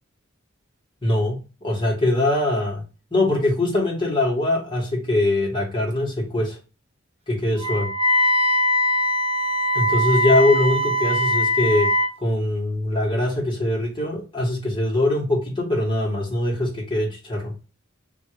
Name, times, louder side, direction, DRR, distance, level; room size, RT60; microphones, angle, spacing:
voice 1, 1.0-1.4 1.6-2.8 3.1-6.6 7.3-7.9 9.7-11.9 12.2-17.5, left 1 dB, 25° left, -2 dB, 1.7 m, -22 dB
Wind instrument woodwind instrument, 7.6-12.2, left 1 dB, 30° right, 0.6 m, -21 dB
3.6 x 2.9 x 4.8 m, 0.33 s
head